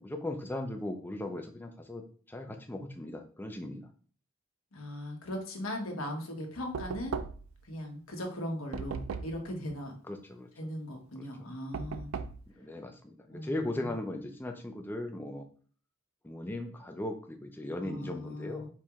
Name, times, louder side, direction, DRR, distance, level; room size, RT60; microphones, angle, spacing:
voice 1, 0.0-2.0 2.3-3.8 10.1-10.5 11.2-11.3 12.6-15.4 16.2-18.7, left 1 dB, 10° left, 3 dB, 0.4 m, -38 dB
voice 2, 4.7-7.2 7.6-10.0 10.6-12.1 13.3-14.0 17.8-18.7, left 1 dB, 90° left, 1 dB, 1.2 m, -39 dB
Knock, 6.7-7.6 8.7-9.5 11.7-12.5, right 5 dB, 80° right, 0.4 m, -37 dB
4.5 x 3.0 x 3.5 m, 0.43 s
head